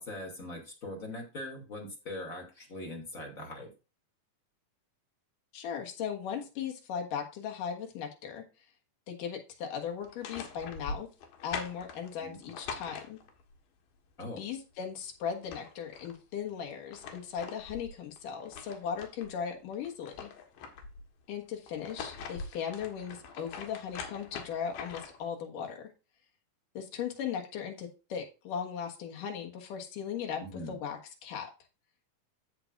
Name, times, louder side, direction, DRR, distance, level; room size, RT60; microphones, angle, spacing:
voice 1, 0.0-3.7 12.2-12.4 14.2-14.4 30.5-30.8, left 1 dB, 25° left, 1 dB, 2.4 m, -41 dB
voice 2, 5.5-8.4 9.1-11.1 11.4-13.2 14.4-20.3 21.3-25.9 26.7-31.5, left 7 dB, 70° left, 2 dB, 3.0 m, -38 dB
sound 1, 10.0-13.5 15.0-15.1 15.3-16.2 16.7-19.3 19.7-21.1 21.7-25.3, left 5 dB, 85° left, 3.1 m, -43 dB
14.5 x 5.2 x 2.5 m, 0.31 s
omnidirectional pair, 4.2 m